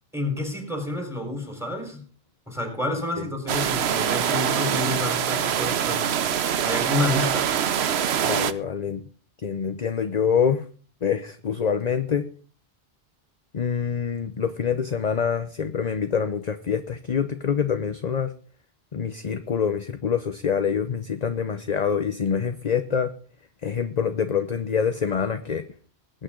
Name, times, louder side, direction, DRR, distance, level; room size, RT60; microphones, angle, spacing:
voice 1, 0.1-2.0 2.5-6.2 6.6-7.5, left 2 dB, 5° right, 3 dB, 4.2 m, -29 dB
sound 1, 3.5-8.5, right 9 dB, 85° right, 1.0 m, -24 dB
voice 2, 8.2-9.0 9.4-10.6 11.0-12.3 13.5-18.3 18.9-23.1 23.6-25.6, left 7 dB, 45° left, 9 dB, 0.8 m, -25 dB
20.5 x 9.0 x 3.8 m, 0.41 s
omnidirectional pair, 1.0 m